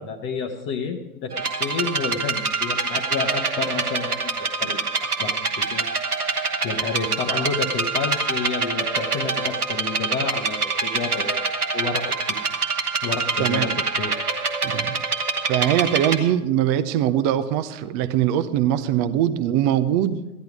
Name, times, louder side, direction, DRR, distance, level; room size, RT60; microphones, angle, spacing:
voice 1, 0.0-4.8 5.2-5.9 6.6-12.4 13.0-14.2, left 4 dB, 25° left, 4 dB, 0.9 m, -30 dB
sound 1, 1.3-16.2, right 4 dB, 85° right, 1.5 m, -25 dB
voice 2, 13.4-13.8 14.6-15.0 15.5-20.2, right 11 dB, 25° right, 13 dB, 0.5 m, -22 dB
14.0 x 10.5 x 4.8 m, 0.98 s
figure-of-eight pair, 100°, 44 cm